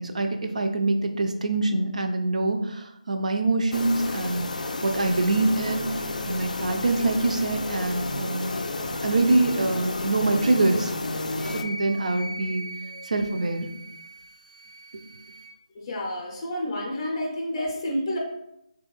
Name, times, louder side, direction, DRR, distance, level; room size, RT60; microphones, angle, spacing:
voice 1, 0.0-4.5 4.8-5.9 6.3-8.6 9.0-10.9 11.6-12.6 13.1-13.7, right 2 dB, 65° right, 5 dB, 0.4 m, -24 dB
sound 1, 3.7-11.6, left 2 dB, 75° left, 0.3 m, -31 dB
Wind instrument woodwind instrument, 11.3-15.5, right 1 dB, 85° right, 1.0 m, -41 dB
voice 2, 15.7-18.2, left 1 dB, 25° left, -2 dB, 0.5 m, -30 dB
3.3 x 2.7 x 2.3 m, 0.82 s
figure-of-eight pair, 160°, 4 cm